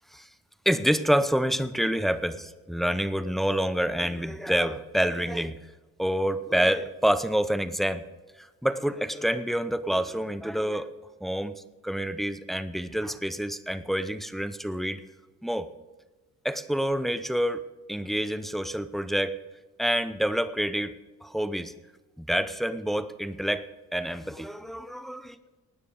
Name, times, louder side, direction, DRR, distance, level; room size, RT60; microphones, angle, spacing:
voice 1, 0.7-5.6 6.0-8.0 8.4-10.9 11.2-11.5 11.8-15.0 15.4-15.7 16.4-17.6 17.9-19.4 19.8-20.9 21.2-21.7 22.2-23.6 23.9-25.3, equal, ahead, 12 dB, 0.7 m, -27 dB
16.5 x 9.9 x 5.0 m, 1.2 s
cardioid pair, 90°, 30 cm